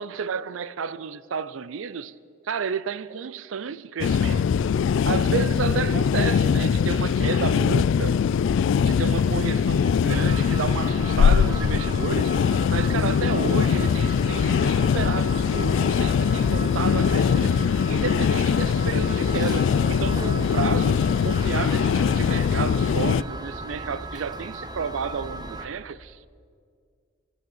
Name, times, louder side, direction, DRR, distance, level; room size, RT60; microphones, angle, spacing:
voice 1, 0.0-2.1 2.4-4.5 5.1-8.2 8.8-12.3 12.7-26.3, right 6 dB, 80° right, 0.5 m, -31 dB
sound 1, 4.0-23.2, left 7 dB, 70° left, 0.3 m, -22 dB
sound 2, 10.1-25.7, right 2 dB, 20° right, 0.7 m, -37 dB
13.5 x 13.5 x 7.3 m
head